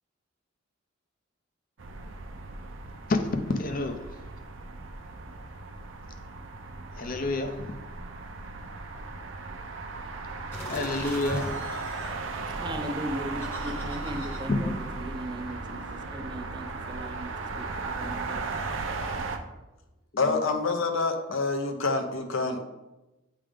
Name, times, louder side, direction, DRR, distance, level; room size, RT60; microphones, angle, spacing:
sound 1, 1.8-19.4, right 3 dB, 70° right, 0.6 m, -37 dB
voice 1, 3.1-4.1 7.0-7.7 10.7-11.5 14.5-14.6, left 2 dB, 45° left, 0.6 m, -28 dB
sound 2, 10.5-15.7, left 1 dB, 10° left, 0.9 m, -41 dB
voice 2, 12.5-18.6, right 1 dB, 20° right, 0.5 m, -38 dB
voice 3, 20.2-22.6, left 3 dB, 75° left, 0.8 m, -27 dB
8.7 x 3.4 x 3.5 m
head